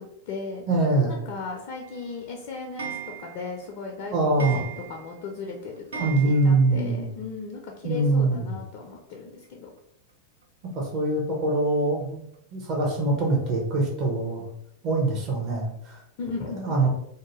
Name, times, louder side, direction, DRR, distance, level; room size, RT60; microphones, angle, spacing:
voice 1, 0.0-0.6 1.1-9.7 16.2-16.9, left 4 dB, 45° left, 0 dB, 0.4 m, -37 dB
voice 2, 0.7-1.1 4.1-4.6 6.0-7.1 7.8-8.5 10.7-12.2 12.5-14.4 14.8-16.0 16.5-16.9, right 2 dB, 35° right, -1 dB, 0.9 m, -23 dB
Clock, 1.8-6.9 7.2-7.3 7.5-7.6 7.9-8.0 9.1-9.2 9.8-9.9 10.4-10.5 11.1-11.2 11.7-11.8 12.3-12.4, right 8 dB, 65° right, 0.3 m, -39 dB
2.6 x 2.2 x 3.0 m, 0.75 s
figure-of-eight pair, 90°, 0 cm